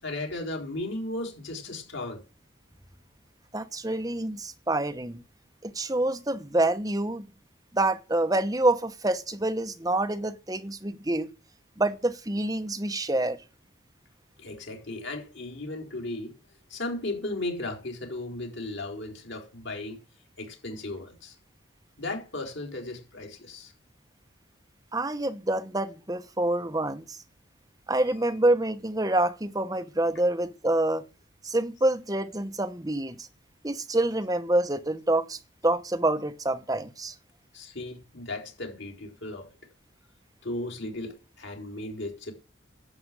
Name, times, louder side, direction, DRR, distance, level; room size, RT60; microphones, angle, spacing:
voice 1, 0.0-2.2 14.4-16.4 16.7-20.0 20.4-21.4 22.0-23.7 37.5-39.5 40.4-42.3, left 2 dB, 75° left, 4.4 m, -35 dB
voice 2, 3.5-5.2 5.6-7.3 7.7-11.3 11.8-13.4 24.9-27.2 27.9-31.1 31.4-33.3 33.6-37.1, right 1 dB, 20° right, 1.0 m, -27 dB
11.5 x 7.8 x 7.7 m
head